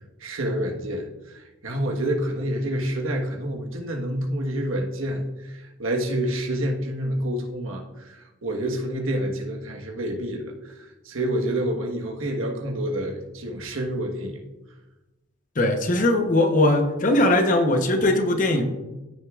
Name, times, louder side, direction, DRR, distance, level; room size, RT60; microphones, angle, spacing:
voice 1, 0.2-14.4, right 1 dB, 85° right, 1 dB, 1.4 m, -28 dB
voice 2, 15.6-18.6, left 1 dB, 40° left, 5 dB, 0.9 m, -20 dB
15.0 x 6.5 x 2.4 m, 1.1 s
head